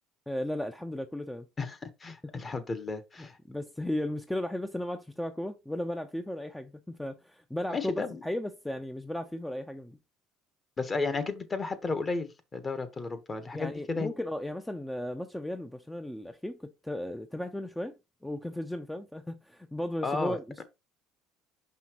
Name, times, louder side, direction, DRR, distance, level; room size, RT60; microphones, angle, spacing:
voice 1, 0.3-1.5 2.3-2.4 3.5-7.9 8.2-10.0 13.5-18.0 18.2-20.6, left 1 dB, 5° left, 0.6 m, -35 dB
voice 2, 1.6-3.4 7.7-8.2 10.8-14.1 20.0-20.6, left 3 dB, 30° left, 1.2 m, -33 dB
5.7 x 5.5 x 3.0 m
supercardioid pair, 90°, 0 cm